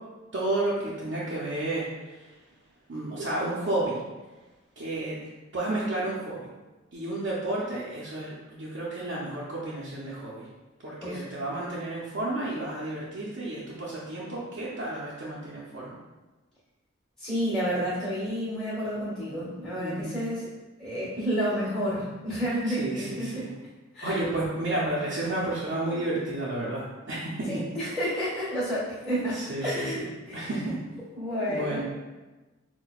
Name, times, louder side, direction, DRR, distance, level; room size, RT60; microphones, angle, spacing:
voice 1, 0.3-2.3 2.9-4.0 4.8-5.2 5.5-6.5 6.9-10.4 10.8-16.0 19.8-20.2 22.7-23.5 24.0-27.5 29.3-29.9 30.3-30.8 31.4-31.8, right 2 dB, 65° right, -8 dB, 0.6 m, -31 dB
voice 2, 17.2-20.5 20.8-23.5 23.9-24.2 27.5-30.7 31.1-31.8, equal, ahead, -10 dB, 1.4 m, -30 dB
5.7 x 2.2 x 2.3 m, 1.2 s
head